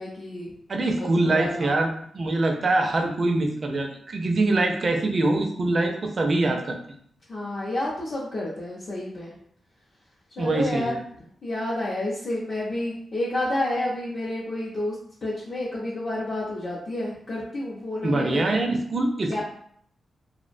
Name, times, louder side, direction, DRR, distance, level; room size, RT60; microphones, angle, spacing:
voice 1, 0.0-0.5 1.3-1.7 7.3-9.3 10.4-10.9 11.4-15.0 15.2-18.6 19.3-19.4, left 1 dB, 45° left, -7 dB, 0.5 m, -30 dB
voice 2, 0.7-6.8 10.4-11.0 18.0-19.4, right 2 dB, 40° right, 3 dB, 0.4 m, -24 dB
2.4 x 2.1 x 2.5 m, 0.65 s
wide cardioid pair, 135°, 0 cm